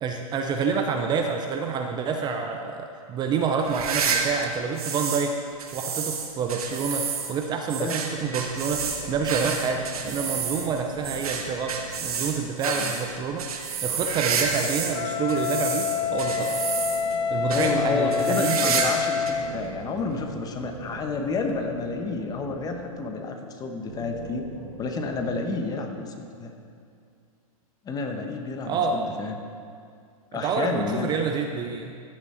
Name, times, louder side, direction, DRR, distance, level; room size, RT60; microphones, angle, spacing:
voice 1, 0.0-5.4 5.7-13.5 13.8-16.5 17.3-18.9 28.6-29.2 30.3-31.9, right 5 dB, 25° right, 4 dB, 0.5 m, -28 dB
sound 1, 3.6-5.3 5.6-15.0 15.3-17.2 17.5-17.7 18.1-19.0 19.3-19.4 20.1-20.2 21.5-21.6, right 6 dB, 75° right, 1.4 m, -29 dB
sound 2, 8.6-12.8 13.9-18.6 19.2-23.2 23.8-25.5, right 2 dB, 60° right, 2.3 m, -42 dB
Wind instrument woodwind instrument, 14.9-19.6, left 7 dB, 65° left, 0.8 m, -27 dB
voice 2, 17.5-24.5 24.8-26.5 27.8-29.4 30.3-31.1, left 3 dB, 20° left, 4 dB, 1.0 m, -30 dB
14.5 x 6.3 x 4.3 m, 2.3 s
hypercardioid pair, 125°, 19 cm